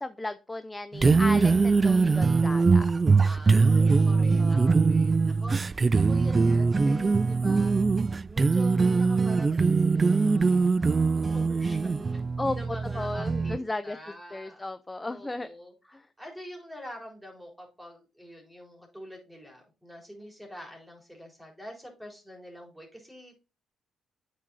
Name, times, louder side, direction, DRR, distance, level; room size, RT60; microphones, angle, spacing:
voice 1, 0.0-2.9 4.1-4.7 12.4-12.6 12.9-14.0 14.3-15.5 15.9-16.1, left 2 dB, 15° left, 12 dB, 0.6 m, -35 dB
sound 1, 0.9-13.6, right 4 dB, 30° right, 0.3 m, -22 dB
voice 2, 3.2-12.3 12.5-14.6 15.1-23.4, equal, 5° right, 1 dB, 4.0 m, -46 dB
8.6 x 6.3 x 4.1 m, 0.32 s
cardioid pair, 90°, 0 cm